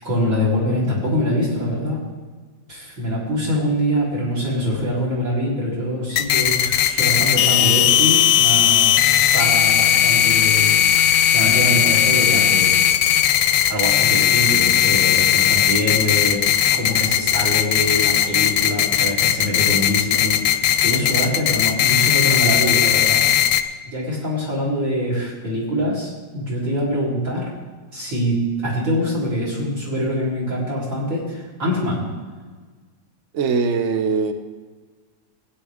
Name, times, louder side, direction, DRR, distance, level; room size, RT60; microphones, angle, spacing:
voice 1, 0.0-2.0 2.7-12.7 13.4-16.5 16.7-23.3 23.9-27.5 27.9-28.4 28.6-32.1, left 1 dB, 40° right, -5 dB, 3.9 m, -24 dB
sound 1, 6.2-23.6, left 11 dB, 75° left, 1.2 m, -17 dB
voice 2, 33.3-34.3, right 4 dB, 75° right, 8 dB, 0.6 m, -21 dB
16.0 x 9.7 x 3.5 m, 1.4 s
omnidirectional pair, 2.1 m